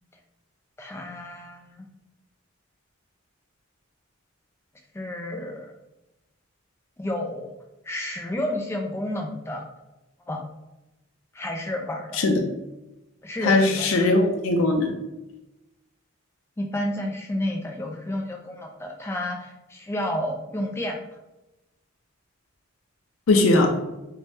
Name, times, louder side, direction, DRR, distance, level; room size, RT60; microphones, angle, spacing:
voice 1, 0.8-1.9 4.9-5.7 7.0-7.5 7.8-9.7 10.3-10.4 11.3-12.2 13.2-14.1 16.6-21.0, left 1 dB, 10° left, 1 dB, 0.3 m, -31 dB
voice 2, 13.4-14.9 23.3-23.7, left 2 dB, 85° left, 3 dB, 0.4 m, -19 dB
2.6 x 2.1 x 3.2 m, 0.97 s
head